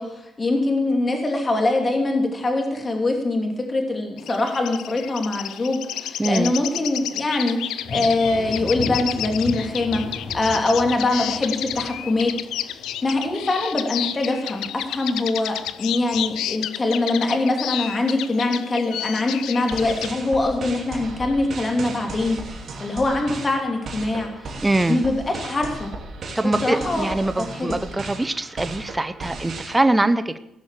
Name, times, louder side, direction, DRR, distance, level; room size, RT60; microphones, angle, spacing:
voice 1, 0.0-12.3 13.0-24.6 24.9-25.9 26.6-27.1 27.5-27.8, left 2 dB, 30° left, 2 dB, 2.9 m, -23 dB
sound 1, 4.2-20.1, left 11 dB, 85° left, 0.5 m, -31 dB
voice 2, 6.2-6.5 24.6-25.0 26.4-30.4, right 2 dB, 15° right, 10 dB, 0.7 m, -23 dB
Thunder, 7.8-14.3 14.6-15.2 15.7-16.5, left 3 dB, 70° left, 5.0 m, -36 dB
sound 2, 19.6-29.8, right 3 dB, 50° right, 2.8 m, -36 dB
16.5 x 6.4 x 7.5 m, 0.87 s
cardioid pair, 90°, 0 cm